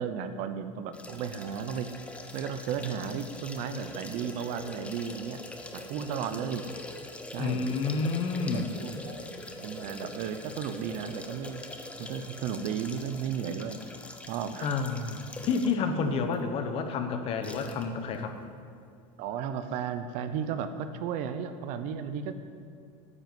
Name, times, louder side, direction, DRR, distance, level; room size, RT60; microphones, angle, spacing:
voice 1, 0.0-1.9 2.3-5.4 5.7-6.7 7.3-7.7 8.4-9.4 9.6-11.6 12.0-13.8 14.3-14.7 19.2-22.3, right 7 dB, 50° right, 10 dB, 0.8 m, -34 dB
sound 1, 0.9-15.9 16.3-16.4 17.4-17.8 18.1-18.2, left 2 dB, 5° left, 0.8 m, -43 dB
voice 2, 7.4-8.7 14.6-18.3, left 4 dB, 35° left, 7 dB, 1.1 m, -29 dB
9.8 x 8.0 x 9.3 m, 2.4 s
supercardioid pair, 160°, 16 cm